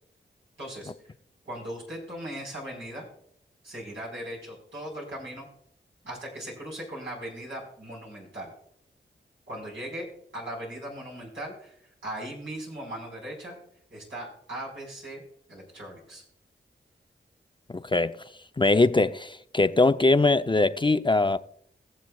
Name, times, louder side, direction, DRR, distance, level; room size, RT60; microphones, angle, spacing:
voice 1, 0.6-1.1 1.4-3.1 3.6-5.5 6.0-8.5 9.5-10.1 10.3-11.7 12.0-13.5 13.9-15.2 15.5-16.2, right 1 dB, 80° right, 4.7 m, -38 dB
voice 2, 17.7-18.2 18.6-21.4, left 3 dB, 25° left, 0.5 m, -22 dB
21.5 x 7.2 x 2.4 m
cardioid pair, 40°, 20 cm